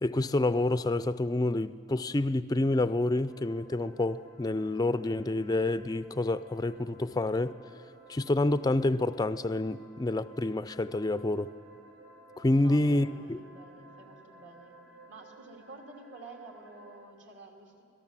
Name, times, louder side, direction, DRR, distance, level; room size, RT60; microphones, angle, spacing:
voice 1, 0.0-7.5 8.1-11.5 12.4-13.4, left 2 dB, 20° left, 0.4 m, -28 dB
sound 1, 3.3-17.0, right 2 dB, 80° right, 3.7 m, -55 dB
voice 2, 12.6-14.8 15.1-17.8, right 2 dB, 65° right, 2.9 m, -50 dB
25.5 x 18.0 x 7.4 m
head